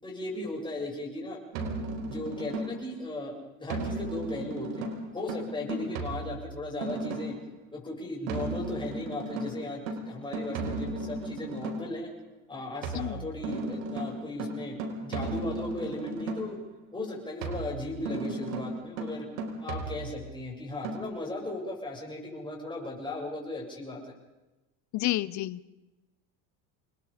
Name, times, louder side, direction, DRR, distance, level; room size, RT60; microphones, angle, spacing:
voice 1, 0.0-1.4 2.0-4.9 5.1-7.3 7.7-12.1 12.5-16.6 16.9-19.3 19.6-24.1, left 2 dB, 10° left, -2 dB, 7.5 m, -37 dB
sound 1, 1.5-3.0 3.7-7.5 8.3-12.0 12.8-16.7 17.4-20.4 20.8-21.0, right 2 dB, 90° right, 4.7 m, -35 dB
voice 2, 24.9-25.7, left 16 dB, 45° left, 19 dB, 0.9 m, -31 dB
28.5 x 21.0 x 5.2 m, 1.0 s
cardioid pair, 130°, 40 cm